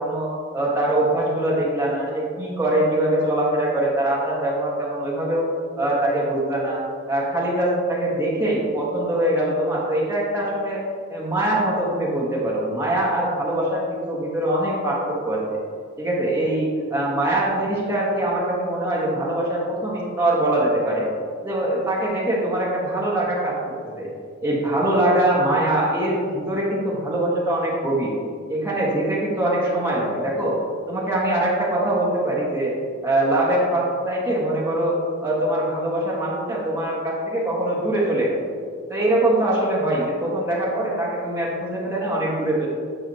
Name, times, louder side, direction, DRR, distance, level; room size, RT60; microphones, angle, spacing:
voice 1, 0.0-5.5 5.8-6.8 7.1-10.8 11.1-15.4 16.0-21.1 21.4-23.6 24.0-24.1 24.4-28.1 28.5-30.6 30.9-32.7 33.0-38.5 38.9-42.7, right 1 dB, 10° right, -6 dB, 1.6 m, -23 dB
9.2 x 6.3 x 2.9 m, 2.2 s
head